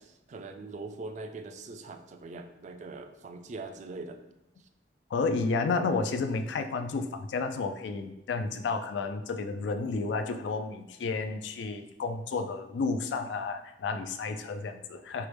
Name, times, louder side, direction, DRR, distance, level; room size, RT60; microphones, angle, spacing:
voice 1, 0.0-4.2 4.6-4.7, right 3 dB, 45° right, 7 dB, 0.3 m, -42 dB
voice 2, 5.1-15.3, left 4 dB, 80° left, 7 dB, 0.3 m, -31 dB
4.6 x 2.1 x 3.3 m, 0.90 s
head